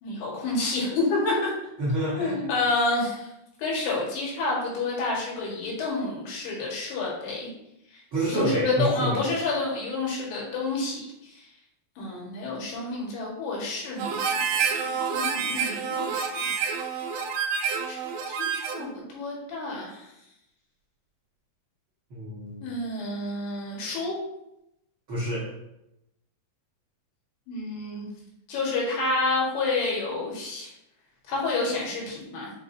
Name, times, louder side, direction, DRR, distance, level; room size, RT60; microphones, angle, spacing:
voice 1, 0.0-1.5 2.2-3.3 3.6-7.5 7.9-11.5 12.0-16.5 17.9-18.0 18.2-20.1 22.6-24.2 27.5-28.1 28.5-30.7 31.3-32.5, left 3 dB, 75° left, -3 dB, 3.6 m, -29 dB
voice 2, 1.8-2.4 8.1-9.2 22.1-22.6 25.1-25.5, right 1 dB, 70° right, -8 dB, 1.2 m, -27 dB
Harmonica, 14.0-18.9, right 6 dB, 85° right, 2.1 m, -28 dB
6.7 x 5.2 x 2.7 m, 0.85 s
omnidirectional pair, 4.8 m